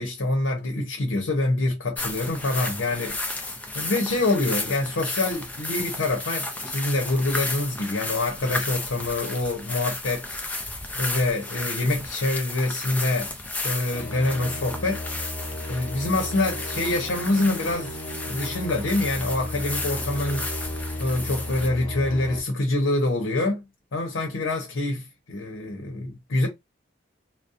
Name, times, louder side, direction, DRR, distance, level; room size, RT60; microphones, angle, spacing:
voice 1, 0.0-3.2 3.7-13.3 13.6-15.0 15.7-18.0 18.3-20.5 21.0-23.6 23.9-26.5, left 2 dB, 85° left, 0.6 m, -26 dB
sound 1, 1.9-21.7, left 2 dB, 10° left, 0.4 m, -33 dB
sound 2, 13.9-22.4, left 1 dB, 30° left, 0.9 m, -35 dB
2.6 x 2.0 x 2.4 m
head